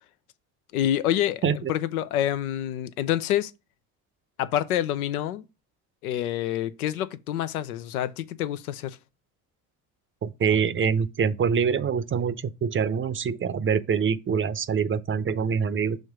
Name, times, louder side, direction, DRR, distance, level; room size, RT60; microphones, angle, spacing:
voice 1, 0.7-1.4 1.7-3.5 4.4-5.4 6.0-9.0, left 11 dB, 90° left, 0.6 m, -27 dB
voice 2, 10.2-16.0, right 6 dB, 30° right, 0.6 m, -25 dB
6.4 x 3.2 x 4.9 m
hypercardioid pair, 65°, 43 cm